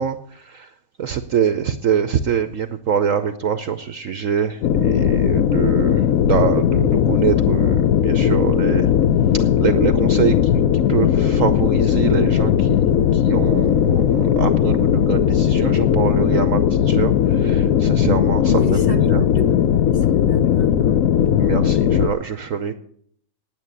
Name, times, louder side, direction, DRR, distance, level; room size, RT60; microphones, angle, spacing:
voice 1, 0.0-8.9 9.3-19.2 21.4-22.7, right 7 dB, 60° right, 10 dB, 0.9 m, -24 dB
sound 1, 4.6-22.1, left 9 dB, 60° left, 1.0 m, -17 dB
voice 2, 18.5-21.0, left 5 dB, 35° left, 4 dB, 1.4 m, -29 dB
9.8 x 9.1 x 9.6 m, 0.63 s
omnidirectional pair, 1.9 m